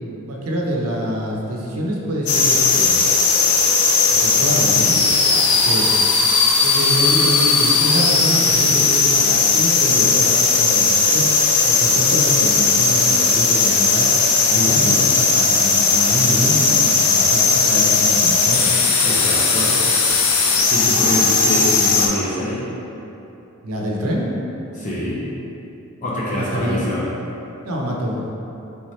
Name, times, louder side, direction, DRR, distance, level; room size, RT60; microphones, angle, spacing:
voice 1, 0.3-3.0 4.1-5.0 5.5-5.8 6.6-14.1 14.5-18.7 19.5-19.7 23.6-24.3 26.3-26.8 27.6-28.2, equal, 75° right, -2 dB, 0.7 m, -25 dB
sound 1, 2.3-22.1, left 4 dB, 75° left, 0.5 m, -17 dB
voice 2, 14.5-15.1 19.0-19.7 20.7-22.6 24.7-25.2 26.0-27.1, left 1 dB, 35° left, -7 dB, 0.6 m, -25 dB
3.5 x 3.1 x 4.3 m, 2.9 s
head